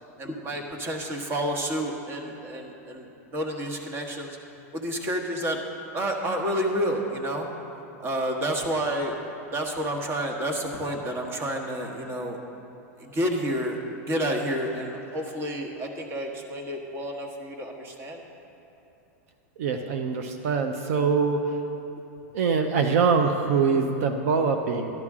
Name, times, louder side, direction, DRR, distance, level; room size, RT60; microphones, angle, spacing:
voice 1, 0.2-3.1 3.3-4.4 4.7-7.5 8.0-9.2 9.5-12.4 13.0-13.8 14.0-18.2, equal, 30° right, 2 dB, 1.3 m, -30 dB
voice 2, 19.6-21.4 22.3-24.9, right 5 dB, 75° right, 5 dB, 0.7 m, -23 dB
12.0 x 11.5 x 3.7 m, 2.9 s
supercardioid pair, 130°, 8 cm